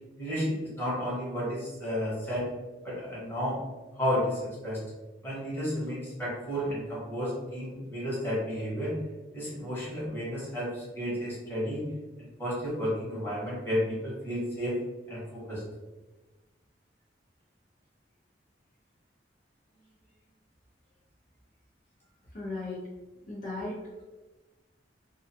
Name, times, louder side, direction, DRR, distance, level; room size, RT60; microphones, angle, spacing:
voice 1, 0.2-2.5 2.8-3.6 3.9-4.8 5.2-8.9 9.3-11.8 12.4-14.8 15.1-15.6, equal, 10° left, -8 dB, 1.1 m, -32 dB
voice 2, 22.3-22.9 23.2-23.8, left 2 dB, 50° left, -6 dB, 0.6 m, -36 dB
2.4 x 2.3 x 2.7 m, 1.2 s
head